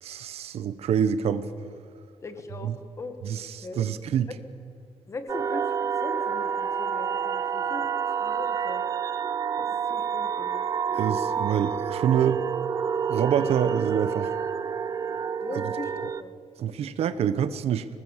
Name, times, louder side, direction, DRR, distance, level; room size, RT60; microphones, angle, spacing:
voice 1, 0.0-1.5 2.6-2.7 3.2-4.3 10.9-12.4 13.1-14.3 16.6-17.9, right 9 dB, 75° right, 13 dB, 1.0 m, -26 dB
voice 2, 2.2-3.2 3.6-3.8 4.3-4.4 5.1-7.9 8.2-8.8 9.6-10.6 15.4-16.3 16.8-17.1, left 3 dB, 30° left, 8 dB, 1.8 m, -39 dB
sound 1, 5.3-16.2, right 7 dB, 35° right, 0.6 m, -28 dB
24.5 x 19.5 x 7.4 m, 2.4 s
wide cardioid pair, 175°, 11 cm